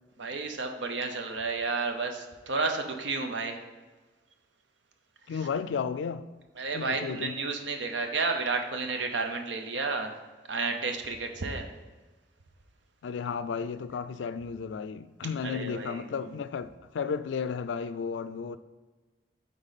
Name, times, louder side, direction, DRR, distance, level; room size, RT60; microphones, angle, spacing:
voice 1, 0.2-3.6 6.6-10.1 10.5-11.7 15.4-16.0, right 4 dB, 85° right, 0.8 m, -31 dB
voice 2, 5.3-6.3 6.7-7.4 13.0-18.6, left 6 dB, 85° left, 0.3 m, -33 dB
8.9 x 3.8 x 4.1 m
head